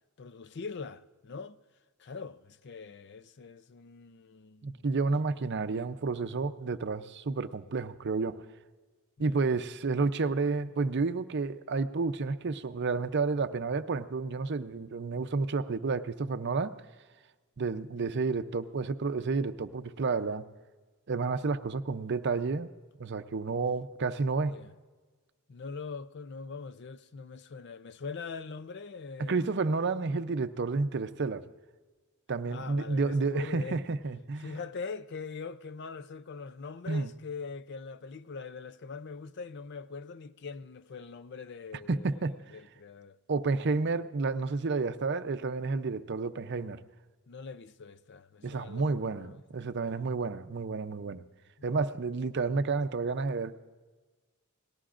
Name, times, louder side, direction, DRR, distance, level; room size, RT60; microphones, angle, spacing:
voice 1, 0.2-1.6 2.0-4.8 9.2-9.4 18.1-18.2 24.4-24.7 25.5-29.5 32.5-33.8 34.4-43.2 47.3-49.4 49.8-50.0 51.6-51.7, left 4 dB, 50° left, 0.5 m, -42 dB
voice 2, 4.6-8.4 9.2-16.7 17.6-20.5 21.1-22.7 23.0-24.6 29.2-31.4 32.3-34.6 36.9-37.1 41.9-42.4 43.3-46.8 48.4-51.2 51.6-53.6, right 4 dB, 55° right, 0.6 m, -30 dB
28.5 x 19.0 x 2.5 m
head